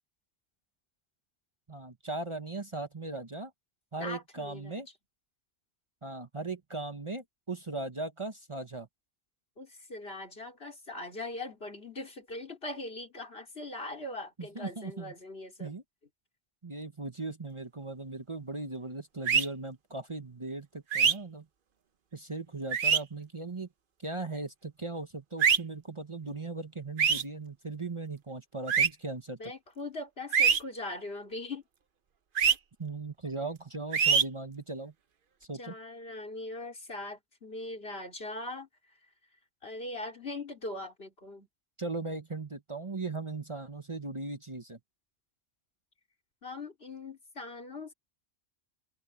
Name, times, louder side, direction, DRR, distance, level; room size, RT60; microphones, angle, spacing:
voice 1, 1.7-3.5 3.9-4.9 6.0-8.9 14.4-15.1 15.6-15.8 16.6-21.5 22.1-23.7 24.0-29.5 32.8-34.9 35.5-35.7 41.8-44.8, right 3 dB, 30° right, 1.1 m, -38 dB
voice 2, 4.0-4.8 9.6-15.7 29.4-31.6 35.6-38.7 39.6-41.5 46.4-47.9, left 2 dB, 70° left, 3.9 m, -41 dB
sound 1, 19.3-19.5 20.9-21.1 22.7-23.0 25.4-25.6 27.0-27.2 28.7-28.9 30.3-30.6 32.4-32.5 33.9-34.2, right 7 dB, 55° right, 1.0 m, -23 dB
omnidirectional pair, 1.1 m